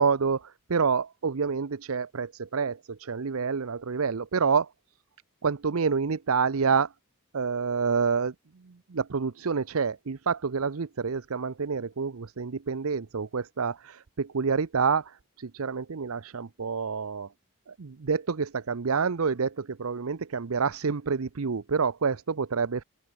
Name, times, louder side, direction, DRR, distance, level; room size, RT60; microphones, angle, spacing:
voice 1, 0.0-4.7 5.4-6.9 7.3-8.3 8.7-17.3 17.7-22.8, right 5 dB, 70° right, 0.7 m, -28 dB
open air
head